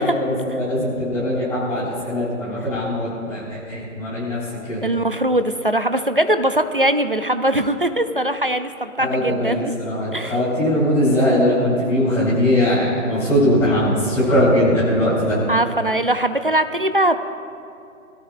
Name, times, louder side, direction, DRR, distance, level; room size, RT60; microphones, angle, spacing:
voice 1, 0.0-4.4 4.7-4.8 9.0-15.4, left 1 dB, 5° left, -12 dB, 3.9 m, -20 dB
voice 2, 4.8-9.8 10.1-10.4 15.5-17.2, right 1 dB, 40° right, 10 dB, 0.5 m, -21 dB
26.0 x 17.5 x 2.5 m, 2.6 s
hypercardioid pair, 170°, 44 cm